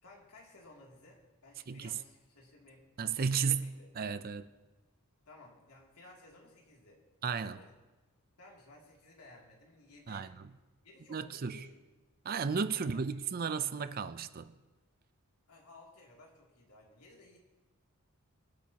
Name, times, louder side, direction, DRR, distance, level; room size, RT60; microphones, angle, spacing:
voice 1, 0.0-2.9 3.3-3.9 5.2-7.0 7.5-7.7 8.4-10.3 10.8-11.9 12.7-13.2 15.5-17.4, left 2 dB, 90° left, 2.8 m, -57 dB
voice 2, 1.7-2.0 3.0-3.7 4.0-4.5 7.2-7.6 10.1-10.5 11.1-11.6 12.2-14.5, right 6 dB, 40° right, 0.5 m, -34 dB
25.5 x 8.5 x 2.9 m
head